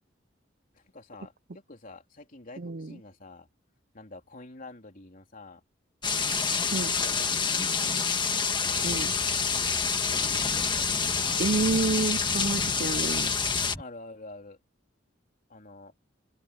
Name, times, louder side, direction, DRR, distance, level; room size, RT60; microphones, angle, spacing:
voice 1, 0.7-3.5 3.9-5.6 6.9-7.3 7.7-8.0 10.1-11.4 13.8-14.6 15.5-15.9, left 2 dB, 45° left, 3.5 m, -47 dB
voice 2, 2.6-3.0 6.7-7.0 8.8-9.1 11.4-13.3, right 3 dB, 50° right, 0.6 m, -29 dB
sound 1, 6.0-13.8, left 5 dB, 25° left, 1.6 m, -27 dB
sound 2, 8.7-13.8, equal, 5° right, 7.8 m, -43 dB
open air
head